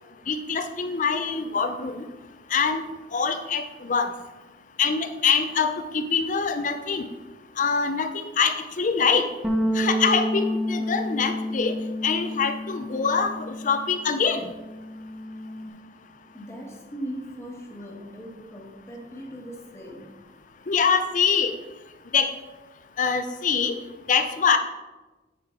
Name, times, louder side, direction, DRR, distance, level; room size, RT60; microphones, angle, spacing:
voice 1, 0.3-2.1 2.5-2.8 3.1-4.1 4.8-7.1 7.6-9.2 9.7-11.7 12.0-14.5 20.7-21.5 22.1-22.3 23.0-23.8 24.1-24.6, left 5 dB, 45° left, 8 dB, 0.5 m, -24 dB
sound 1, 9.4-14.0 14.3-15.7, equal, 5° right, 0.7 m, -29 dB
voice 2, 16.3-20.2, equal, 15° left, -1 dB, 1.3 m, -39 dB
10.0 x 5.0 x 3.7 m, 1.2 s
head